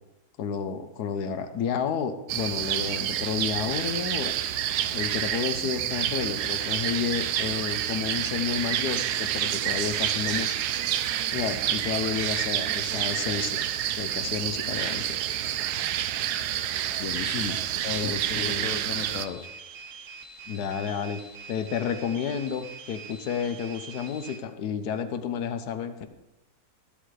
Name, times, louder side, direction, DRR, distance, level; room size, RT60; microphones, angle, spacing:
voice 1, 0.4-4.3 4.9-10.6 11.3-13.6 14.0-15.6 17.8-18.7 19.3-19.4 20.5-21.2 21.5-26.1, left 7 dB, 85° left, 9 dB, 1.4 m, -31 dB
sound 1, 2.3-19.3, right 11 dB, 85° right, 1.2 m, -28 dB
voice 2, 17.0-17.6 18.0-19.5, left 7 dB, 65° left, 8 dB, 1.1 m, -35 dB
sound 2, 19.0-24.4, right 5 dB, 55° right, 1.3 m, -44 dB
14.0 x 12.0 x 3.2 m, 0.92 s
omnidirectional pair, 1.7 m